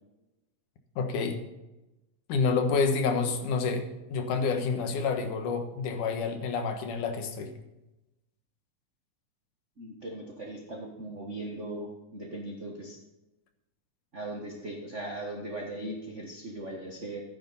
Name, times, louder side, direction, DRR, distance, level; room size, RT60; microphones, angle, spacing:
voice 1, 1.0-1.4 2.3-3.8 4.1-7.5, left 5 dB, 85° left, 5 dB, 2.9 m, -28 dB
voice 2, 9.8-13.0 14.1-17.2, right 1 dB, 40° right, 0 dB, 1.1 m, -39 dB
13.5 x 10.0 x 4.1 m, 0.99 s
omnidirectional pair, 3.5 m